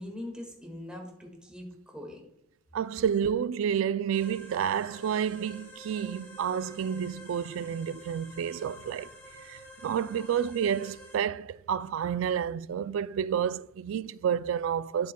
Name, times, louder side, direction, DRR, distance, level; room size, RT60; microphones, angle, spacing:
voice 1, 0.0-2.2, left 1 dB, 5° right, 1.8 m, -42 dB
voice 2, 2.7-15.1, right 8 dB, 70° right, 0.3 m, -30 dB
sound 1, 4.1-11.2, equal, 10° left, 2.1 m, -49 dB
12.0 x 7.3 x 2.2 m
head